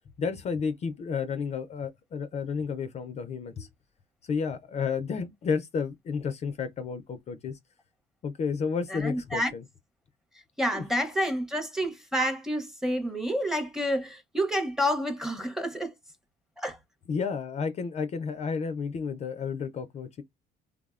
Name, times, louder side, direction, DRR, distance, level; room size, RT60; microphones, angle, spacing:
voice 1, 0.2-3.7 4.2-7.6 8.2-9.6 10.7-10.8 17.1-20.2, left 5 dB, 40° left, 0.4 m, -31 dB
voice 2, 8.9-9.5 10.6-15.9 16.6-16.8, equal, 5° right, 0.6 m, -29 dB
3.4 x 2.0 x 2.3 m
cardioid pair, 110°, 17 cm